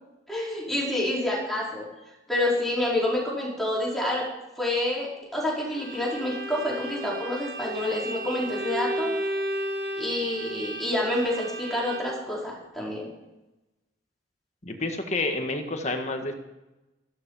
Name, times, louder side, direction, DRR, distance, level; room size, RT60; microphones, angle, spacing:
voice 1, 0.3-1.9 2.3-4.3 4.6-9.1 10.0-13.1, left 1 dB, ahead, -5 dB, 4.9 m, -28 dB
Bowed string instrument, 5.7-12.3, right 1 dB, 50° right, 2.1 m, -33 dB
voice 2, 14.6-16.3, left 2 dB, 35° left, 5 dB, 1.8 m, -29 dB
14.5 x 13.0 x 5.8 m, 1.0 s
head